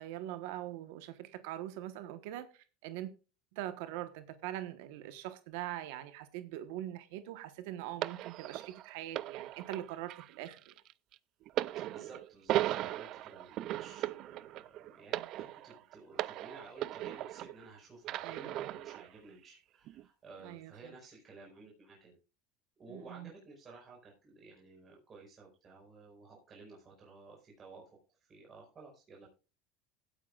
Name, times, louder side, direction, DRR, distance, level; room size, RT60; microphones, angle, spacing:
voice 1, 0.0-2.5 2.8-3.1 3.6-10.6 15.1-15.2 18.2-18.7 20.4-20.7 22.9-23.3, right 13 dB, 75° right, 1.2 m, -42 dB
sound 1, 8.0-17.7 18.0-19.1 19.9-20.0, right 14 dB, 50° right, 0.5 m, -38 dB
voice 2, 11.8-22.2 22.8-27.8 28.2-29.3, right 3 dB, 30° right, 5.1 m, -54 dB
16.5 x 9.2 x 2.4 m
supercardioid pair, 125°, 0 cm